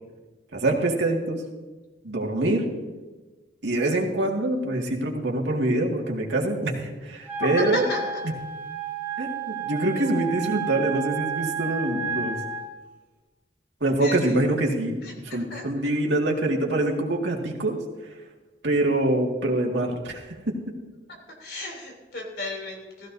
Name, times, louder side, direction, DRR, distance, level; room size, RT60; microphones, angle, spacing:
voice 1, 0.5-1.4 2.0-2.7 3.6-7.8 9.2-12.4 13.8-17.8 18.6-20.5, right 1 dB, 85° right, 0 dB, 2.0 m, -25 dB
Wind instrument woodwind instrument, 7.3-12.6, right 6 dB, 15° right, 2.0 m, -31 dB
voice 2, 7.4-8.0 10.0-10.1 14.0-14.4 15.0-15.6 21.4-23.1, left 2 dB, 65° left, 1 dB, 3.2 m, -33 dB
15.0 x 15.0 x 2.7 m, 1.2 s
head